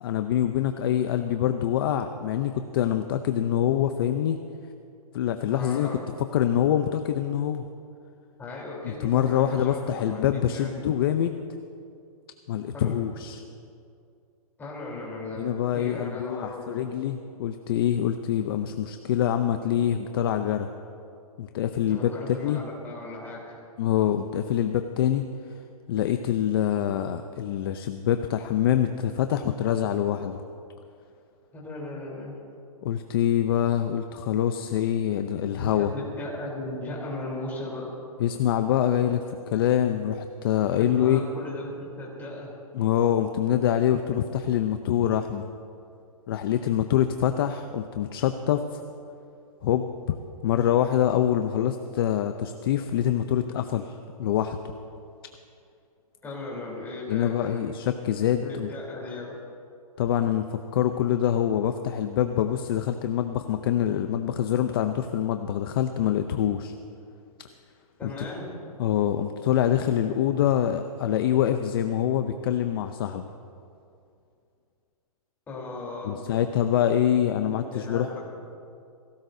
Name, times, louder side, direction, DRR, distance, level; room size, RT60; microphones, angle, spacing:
voice 1, 0.0-4.4 5.1-5.9 6.2-7.7 8.8-11.4 12.5-13.4 15.4-20.7 21.4-22.1 22.4-22.6 23.8-25.2 25.9-30.4 32.8-35.9 38.2-41.2 42.7-45.5 46.3-48.8 49.6-49.9 50.4-54.6 57.1-58.7 60.0-66.7 68.0-68.1 68.8-73.3 76.0-78.1, left 10 dB, 40° left, 8 dB, 0.6 m, -25 dB
voice 2, 5.5-6.1 8.4-10.7 12.7-12.9 14.6-16.8 21.7-23.6 31.5-32.4 35.6-37.9 40.8-41.7 42.0-42.5 56.2-57.6 58.4-59.3 68.0-68.5 75.5-76.2 77.4-78.3, left 2 dB, 10° left, -5 dB, 3.5 m, -37 dB
21.5 x 17.0 x 2.7 m, 2.5 s
hypercardioid pair, 160°, 19 cm